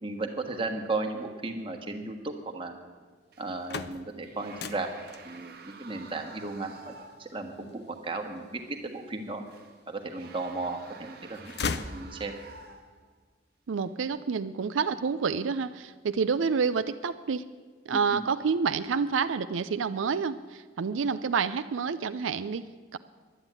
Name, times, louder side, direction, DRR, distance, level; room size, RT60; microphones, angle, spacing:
voice 1, 0.0-2.7 3.4-4.9 5.2-6.9 7.2-9.4 9.9-12.3 17.9-18.2, right 3 dB, 25° right, 4 dB, 1.3 m, -35 dB
sound 1, 3.3-3.8 4.2-7.4 7.8-7.9 9.5-13.2 13.8-14.1, right 4 dB, 50° right, 1.0 m, -50 dB
sound 2, 3.4-9.3 9.9-10.7 11.0-12.6, left 5 dB, 55° left, 0.6 m, -39 dB
voice 2, 13.7-17.4 17.9-22.7 22.9-23.0, right 5 dB, 85° right, 11 dB, 0.5 m, -28 dB
11.5 x 9.8 x 8.9 m, 1.5 s
head